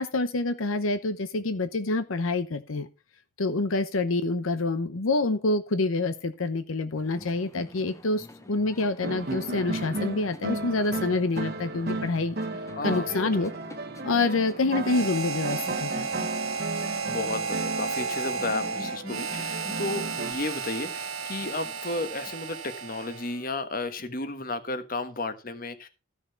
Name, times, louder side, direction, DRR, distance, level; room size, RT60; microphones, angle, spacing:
voice 1, 0.0-2.9 3.4-12.4 12.8-13.5 14.0-16.3 16.7-16.9, left 3 dB, 85° left, 11 dB, 0.8 m, -27 dB
sound 1, 6.9-22.4, left 1 dB, 15° left, 0.8 m, -47 dB
sound 2, 9.0-20.3, right 2 dB, 50° right, 1.1 m, -35 dB
voice 2, 12.7-13.4 17.1-25.9, left 2 dB, 45° left, 10 dB, 1.3 m, -33 dB
Harmonica, 14.8-23.5, right 5 dB, 85° right, 1.1 m, -33 dB
14.0 x 6.4 x 4.5 m, 0.30 s
head